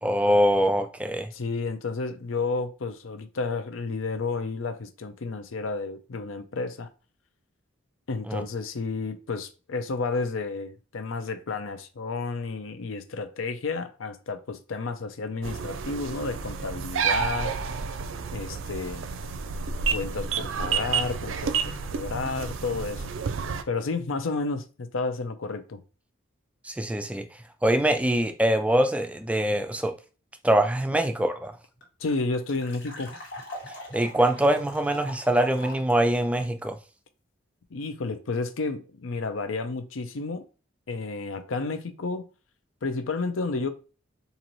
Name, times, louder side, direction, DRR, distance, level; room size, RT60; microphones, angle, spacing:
voice 1, 0.0-1.3 8.3-8.4 26.6-27.3 27.6-29.9 30.4-31.5 33.9-36.8, right 1 dB, 5° right, 0.3 m, -23 dB
voice 2, 1.3-6.9 8.1-17.5 18.3-19.1 19.9-23.1 23.7-25.8 32.0-33.1 37.7-40.4 40.9-42.3 42.8-43.7, left 3 dB, 85° left, 0.6 m, -31 dB
sound 1, 15.4-23.6, right 5 dB, 75° right, 0.4 m, -30 dB
sound 2, 31.2-31.3 31.4-31.5 31.8-35.9, left 1 dB, 65° left, 1.5 m, -42 dB
4.0 x 2.6 x 3.0 m
head